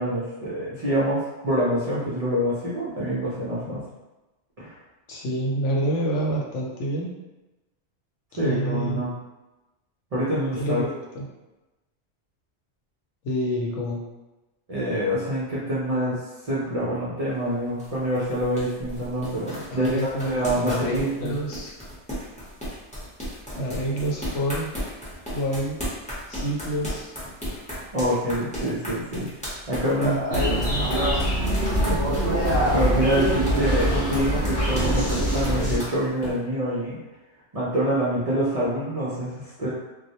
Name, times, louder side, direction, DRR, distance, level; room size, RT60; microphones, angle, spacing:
voice 1, 0.0-3.8 4.6-4.8 8.3-9.1 10.1-10.8 14.7-16.1 16.4-21.3 27.9-29.3 29.7-30.6 32.7-37.0 37.5-39.7, equal, 50° right, -8 dB, 0.4 m, -26 dB
voice 2, 5.1-7.1 8.4-9.0 10.6-11.3 13.2-14.0 19.7-21.7 23.6-24.7 25.3-25.8 26.3-27.1 30.0-30.9 31.9-32.1, right 1 dB, 90° left, -2 dB, 0.9 m, -28 dB
sound 1, 17.3-36.3, equal, 10° left, 0.6 m, -35 dB
sound 2, 30.3-35.8, equal, 15° right, 0.9 m, -23 dB
2.2 x 2.0 x 2.7 m, 1.1 s
omnidirectional pair, 1.2 m